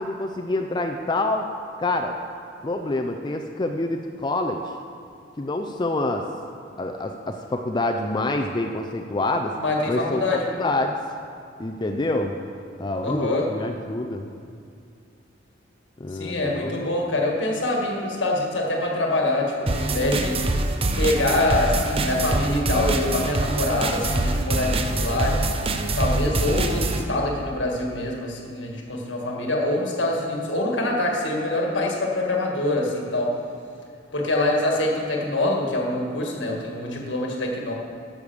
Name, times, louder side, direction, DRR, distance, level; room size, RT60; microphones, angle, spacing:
voice 1, 0.0-1.5 1.8-2.1 2.6-4.7 5.4-6.3 6.8-9.5 9.9-10.2 10.5-11.0 11.6-12.3 12.8-14.3 16.0-16.7, left 2 dB, 25° left, 3 dB, 0.5 m, -26 dB
voice 2, 9.6-10.4 13.0-13.5 16.1-20.6 21.0-25.4 26.0-33.3 34.1-37.7, left 1 dB, 70° left, 0 dB, 1.8 m, -25 dB
sound 1, 19.7-27.0, right 2 dB, 30° right, 0.7 m, -24 dB
11.0 x 6.6 x 7.1 m, 2.3 s
head